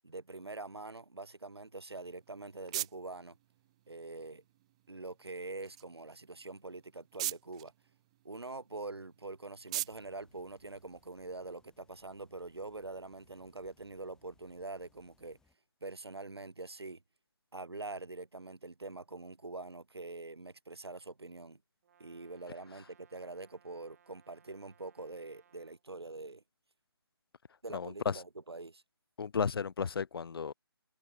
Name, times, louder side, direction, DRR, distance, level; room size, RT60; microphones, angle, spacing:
voice 1, 0.0-3.4 3.9-4.4 4.9-7.7 8.3-15.4 15.8-17.0 17.5-21.6 22.0-26.4 27.6-28.8, right 3 dB, 80° right, 1.6 m, -44 dB
sound 1, 1.9-11.3, right 16 dB, 15° right, 0.4 m, -45 dB
sound 2, 9.9-15.5, left 4 dB, 5° left, 5.6 m, -72 dB
Brass instrument, 21.8-25.8, right 8 dB, 40° right, 5.0 m, -67 dB
voice 2, 27.7-28.2 29.2-30.5, left 6 dB, 65° left, 0.4 m, -33 dB
figure-of-eight pair, 150°, 13 cm